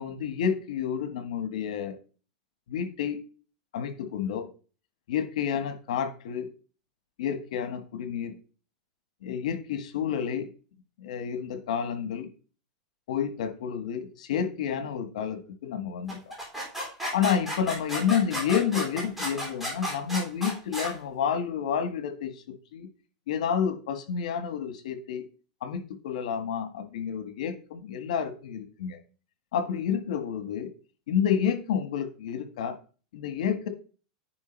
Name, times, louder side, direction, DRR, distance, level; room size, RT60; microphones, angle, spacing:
voice 1, 0.0-2.0 2.7-3.2 3.7-4.5 5.1-6.5 7.2-8.3 9.2-10.5 11.0-12.3 13.1-16.2 17.1-22.9 23.3-25.2 25.6-29.0 29.5-30.7 31.1-32.8 33.1-33.7, left 8 dB, 85° left, 9 dB, 1.7 m, -30 dB
sound 1, 16.1-20.9, equal, 5° right, 3.5 m, -33 dB
9.6 x 4.6 x 4.6 m, 0.37 s
supercardioid pair, 165°, 4 cm